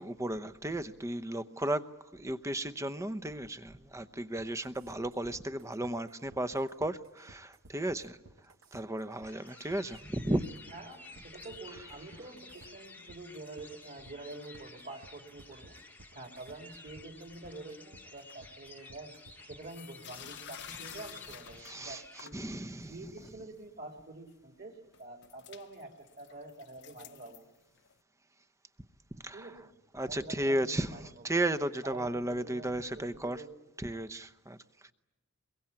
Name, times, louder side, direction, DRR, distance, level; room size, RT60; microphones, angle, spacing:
voice 1, 0.0-1.8 2.1-8.2 8.7-10.4 21.6-23.1 29.2-29.6 29.9-33.4 33.8-34.6, right 1 dB, 15° right, 0.8 m, -34 dB
sound 1, 4.4-19.8, right 2 dB, 65° right, 1.2 m, -57 dB
sound 2, 9.2-22.2, left 3 dB, 10° left, 1.1 m, -53 dB
voice 2, 10.7-15.8 16.1-19.1 19.4-22.4 22.9-27.4 29.3-29.7 30.0-31.1 31.8-33.6, right 2 dB, 45° right, 3.3 m, -47 dB
sound 3, 19.7-22.4 22.9-23.6 24.3-24.4 24.9-28.0, left 9 dB, 55° left, 0.8 m, -51 dB
23.5 x 22.5 x 8.7 m
head